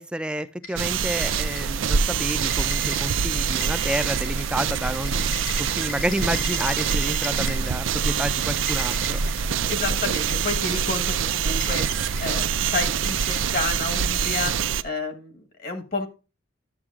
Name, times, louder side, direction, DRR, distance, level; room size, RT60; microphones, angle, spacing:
voice 1, 0.0-9.2 9.9-10.0, right 1 dB, 5° right, 10 dB, 0.4 m, -30 dB
sound 1, 0.6-1.9 2.2-7.8 8.2-9.5 10.1-10.7 11.4-12.3 12.9-14.0, left 5 dB, 90° left, 3.0 m, -39 dB
sound 2, 0.8-14.8, right 7 dB, 70° right, 0.5 m, -25 dB
voice 2, 9.7-11.9 12.2-16.1, left 3 dB, 45° left, 5 dB, 1.2 m, -30 dB
11.5 x 7.9 x 2.4 m, 0.32 s
head